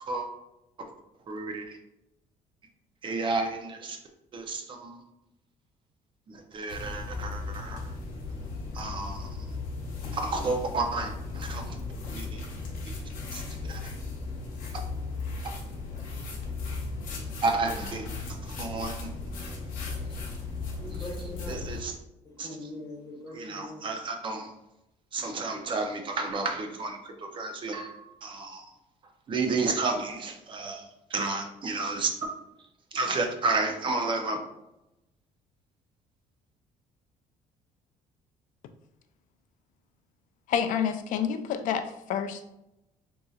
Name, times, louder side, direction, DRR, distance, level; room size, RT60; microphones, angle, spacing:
voice 1, 1.3-1.8 3.0-4.0 4.3-5.0 6.3-7.8 8.7-9.3 10.1-11.8 12.1-12.4 13.3-13.8 14.7-14.8 15.4-15.5 17.4-18.1 18.4-19.1 21.5-21.9 22.4-22.5 23.3-24.5 25.1-28.7 29.3-32.1 32.9-34.4, right 3 dB, 35° right, 4 dB, 0.6 m, -31 dB
sound 1, 6.7-21.8, left 3 dB, 85° left, 0.9 m, -36 dB
voice 2, 20.4-21.6 22.4-23.9, left 1 dB, 25° left, -2 dB, 1.0 m, -42 dB
voice 3, 40.5-42.5, left 8 dB, 70° left, 8 dB, 0.4 m, -28 dB
3.9 x 2.7 x 2.4 m, 0.89 s
cardioid pair, 135°, 14 cm